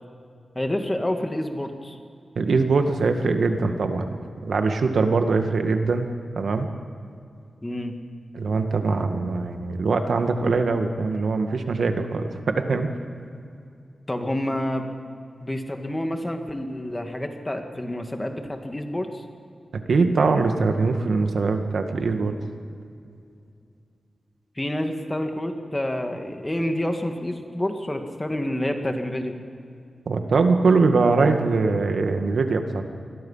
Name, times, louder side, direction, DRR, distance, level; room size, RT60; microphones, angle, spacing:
voice 1, 0.6-2.0 7.6-8.0 14.1-14.9 15.4-19.2 24.6-29.4, left 1 dB, 15° left, 4 dB, 2.1 m, -28 dB
voice 2, 2.4-4.1 4.4-6.1 6.4-6.7 8.3-12.9 19.9-22.4 30.1-32.8, right 4 dB, 75° right, 6 dB, 2.0 m, -22 dB
27.5 x 21.5 x 5.8 m, 2.4 s
wide cardioid pair, 135°, 0 cm